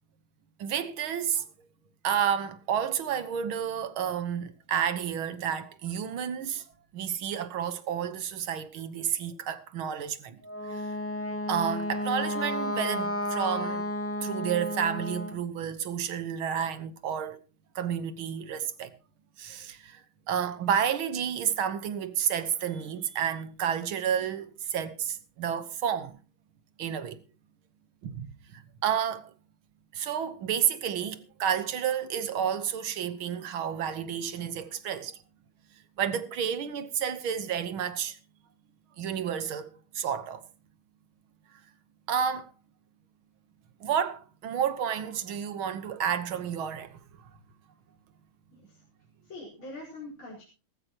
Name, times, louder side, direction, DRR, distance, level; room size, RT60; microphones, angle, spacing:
voice 1, 0.6-1.5 2.0-6.6 6.9-10.4 10.7-10.9 11.5-13.9 14.2-17.4 17.8-18.9 19.4-20.0 20.3-26.2 26.8-27.2 28.0-29.3 29.9-35.2 36.0-38.2 39.0-40.4 42.1-42.5 43.8-47.0, right 8 dB, 75° right, 2.0 m, -30 dB
Wind instrument woodwind instrument, 10.4-15.4, left 1 dB, 20° left, 0.4 m, -32 dB
voice 2, 49.3-50.4, left 2 dB, 80° left, 5.6 m, -43 dB
18.5 x 15.0 x 3.0 m
omnidirectional pair, 2.3 m